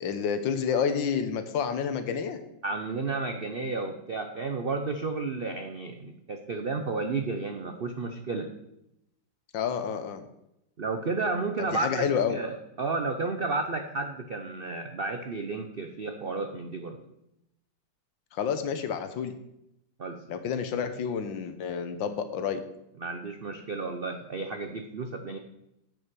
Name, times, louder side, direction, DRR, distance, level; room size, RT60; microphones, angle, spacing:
voice 1, 0.0-2.4 9.5-10.2 11.6-12.4 18.3-19.3 20.3-22.6, left 7 dB, 75° left, 9 dB, 1.6 m, -29 dB
voice 2, 2.6-8.5 10.8-17.0 20.0-20.2 23.0-25.4, right 3 dB, 70° right, 5 dB, 0.5 m, -32 dB
8.5 x 6.5 x 6.1 m, 0.83 s
omnidirectional pair, 2.1 m